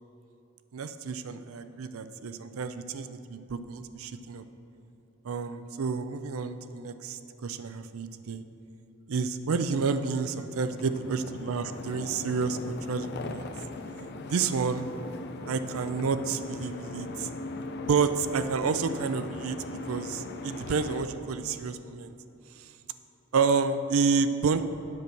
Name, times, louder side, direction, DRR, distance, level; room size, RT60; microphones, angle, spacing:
voice 1, 0.7-4.4 5.2-8.4 9.1-13.5 14.3-14.9 15.5-17.3 17.9-19.6 19.9-22.1 22.6-22.7 23.3-24.6, right 5 dB, 80° right, 11 dB, 0.5 m, -29 dB
sound 1, 10.1-21.0, left 2 dB, 50° left, 0.5 m, -39 dB
7.9 x 6.0 x 6.9 m, 2.9 s
head